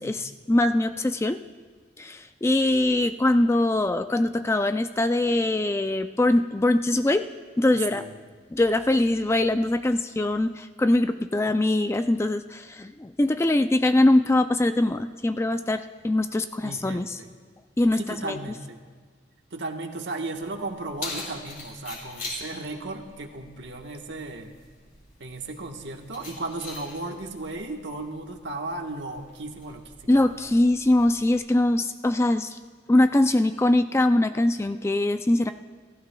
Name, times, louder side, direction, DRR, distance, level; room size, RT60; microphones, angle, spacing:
voice 1, 0.0-1.4 2.0-7.3 7.6-8.1 8.5-17.2 17.8-18.4 30.1-32.6 32.9-35.5, left 1 dB, 15° left, 9 dB, 0.3 m, -22 dB
voice 2, 7.7-8.3 16.6-17.3 17.9-18.8 19.5-24.5 25.2-30.4, right 2 dB, 65° right, 3 dB, 1.3 m, -35 dB
Keys jangling, 20.4-31.4, left 3 dB, 50° left, 5.4 m, -43 dB
28.0 x 15.0 x 2.3 m, 1.5 s
head